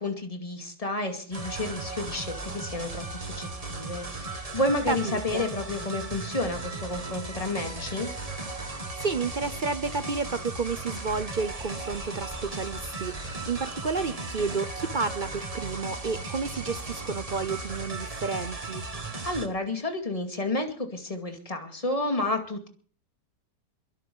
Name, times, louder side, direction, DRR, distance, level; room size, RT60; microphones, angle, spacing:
voice 1, 0.0-8.1 19.3-22.7, left 2 dB, 20° left, 4 dB, 2.4 m, -31 dB
sound 1, 1.3-19.5, right 3 dB, 20° right, 1.7 m, -36 dB
voice 2, 4.9-5.5 9.0-18.8, right 4 dB, 50° right, 12 dB, 0.5 m, -31 dB
23.0 x 8.2 x 5.5 m, 0.44 s
omnidirectional pair, 1.8 m